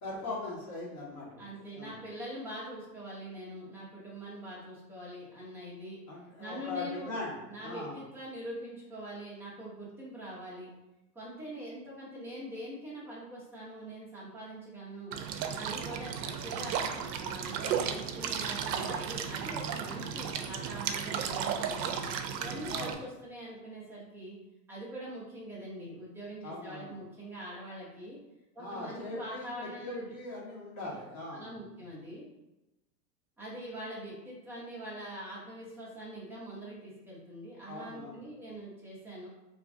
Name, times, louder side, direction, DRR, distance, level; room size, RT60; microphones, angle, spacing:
voice 1, 0.0-2.0 6.1-8.0 22.7-23.0 26.4-26.9 28.6-31.5 37.7-38.2, left 2 dB, 30° left, -4 dB, 1.2 m, -40 dB
voice 2, 1.4-6.0 6.4-7.1 7.5-10.7 11.1-15.1 15.5-22.1 22.4-24.4 24.7-28.2 28.5-30.1 30.8-31.0 31.3-32.2 33.4-39.3, equal, 5° right, -8 dB, 0.8 m, -43 dB
sound 1, 15.1-22.9, right 7 dB, 85° right, 0.6 m, -34 dB
2.9 x 2.4 x 3.6 m, 0.97 s
supercardioid pair, 140°, 49 cm